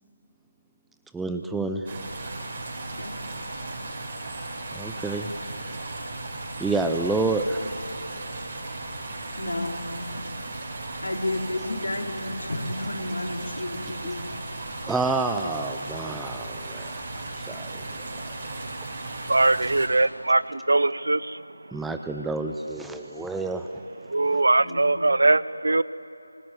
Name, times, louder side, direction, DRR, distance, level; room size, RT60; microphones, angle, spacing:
voice 1, 1.1-1.9 4.7-5.3 6.6-7.7 14.9-17.8 21.7-23.7 24.3-24.4, right 3 dB, 5° right, 6 dB, 0.5 m, -29 dB
sound 1, 1.9-19.9, right 2 dB, 30° right, 5.5 m, -36 dB
voice 2, 9.0-9.9 11.0-14.3 24.6-25.1, left 1 dB, 75° left, 2 dB, 3.7 m, -32 dB
voice 3, 19.3-20.4 20.7-21.2 24.1-25.8, right 2 dB, 70° right, 18 dB, 0.7 m, -21 dB
24.5 x 19.0 x 9.8 m, 3.0 s
figure-of-eight pair, 165°, 0 cm